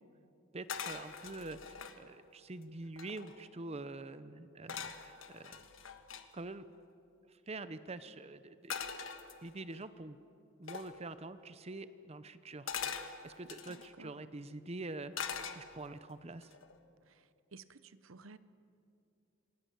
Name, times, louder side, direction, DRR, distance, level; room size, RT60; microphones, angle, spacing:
voice 1, 0.5-5.6 6.3-6.7 7.5-8.7 9.4-10.2 10.6-12.9 13.2-16.5, right 2 dB, 30° right, 0.7 m, -46 dB
sound 1, 0.7-2.0 2.6-2.7 2.9-3.5 4.7-6.3 8.7-9.8 10.7-11.0 12.7-13.9 15.1-16.0 16.4-16.8, left 6 dB, 75° left, 1.5 m, -42 dB
voice 2, 13.7-14.2 17.1-17.2 17.5-18.4, right 4 dB, 80° right, 0.9 m, -54 dB
27.5 x 19.5 x 7.5 m
head